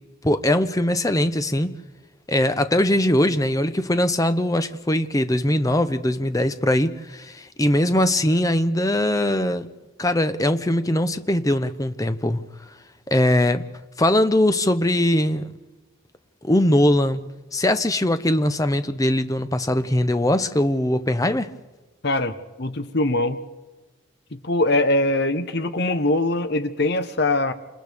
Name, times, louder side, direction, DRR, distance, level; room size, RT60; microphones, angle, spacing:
voice 1, 0.2-1.8 2.3-9.7 10.0-12.4 13.1-13.6 14.0-15.5 16.4-17.2 17.5-21.5, left 1 dB, 15° left, 10 dB, 0.7 m, -21 dB
voice 2, 22.0-23.4 24.3-27.5, left 2 dB, 50° left, 9 dB, 1.0 m, -22 dB
29.0 x 27.5 x 3.5 m, 1.2 s
head